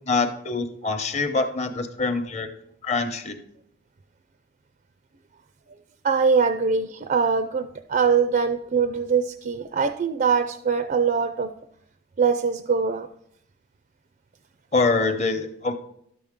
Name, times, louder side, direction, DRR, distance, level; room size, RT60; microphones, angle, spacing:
voice 1, 0.1-2.5 2.8-3.4 14.7-15.7, left 3 dB, 35° left, 7 dB, 0.9 m, -24 dB
voice 2, 6.0-11.5 12.2-13.1, right 5 dB, 40° right, 9 dB, 0.4 m, -22 dB
12.0 x 7.0 x 3.6 m, 0.71 s
head